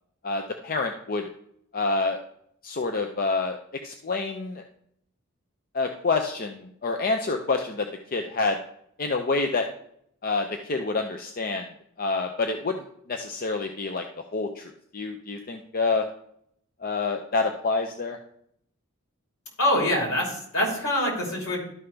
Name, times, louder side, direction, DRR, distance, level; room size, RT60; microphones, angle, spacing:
voice 1, 0.2-1.2 1.7-2.2 2.6-3.6 3.8-4.6 5.7-8.6 9.0-9.7 10.2-11.7 12.0-14.0 14.3-14.6 14.9-16.0 16.8-18.2, left 3 dB, 40° left, 4 dB, 0.6 m, -27 dB
voice 2, 19.6-21.6, left 1 dB, 75° left, -2 dB, 3.5 m, -24 dB
12.5 x 5.5 x 3.3 m, 0.69 s
head